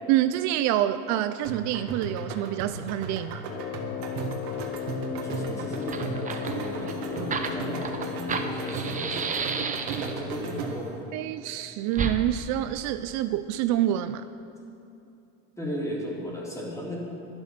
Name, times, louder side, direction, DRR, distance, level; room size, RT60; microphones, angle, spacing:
voice 1, 0.1-3.4 11.1-14.2, right 12 dB, 65° right, 11 dB, 0.5 m, -27 dB
sound 1, 1.4-11.0, right 4 dB, 80° right, 1.7 m, -35 dB
Brass instrument, 3.4-9.1, left 9 dB, 40° left, 0.5 m, -36 dB
voice 2, 5.0-9.4 9.9-11.0 15.6-17.0, equal, 10° left, -4 dB, 3.6 m, -36 dB
Fire, 5.4-5.5 5.8-10.3 11.9-12.2, right 5 dB, 25° right, 0.9 m, -32 dB
11.5 x 11.5 x 6.0 m, 2.7 s
supercardioid pair, 115°, 31 cm